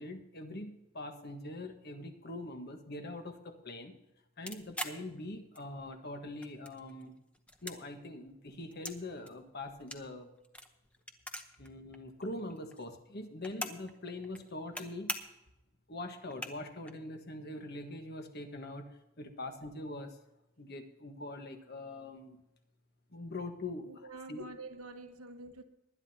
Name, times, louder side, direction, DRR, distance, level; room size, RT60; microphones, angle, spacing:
voice 1, 0.0-3.9 4.4-7.1 7.6-10.3 11.6-15.1 15.9-18.9 19.2-20.2 20.6-22.4 23.1-24.4, left 2 dB, 45° left, 6 dB, 1.4 m, -43 dB
sound 1, 4.5-5.9 6.2-7.0 7.3-9.0 9.3-11.7 11.9-12.0 12.2-13.9 14.2-14.8 15.1-15.5 15.9-16.0 16.3-16.9, left 1 dB, 5° left, 0.8 m, -42 dB
voice 2, 23.9-25.6, right 3 dB, 85° right, 5 dB, 1.3 m, -47 dB
19.5 x 11.5 x 2.9 m, 0.90 s
head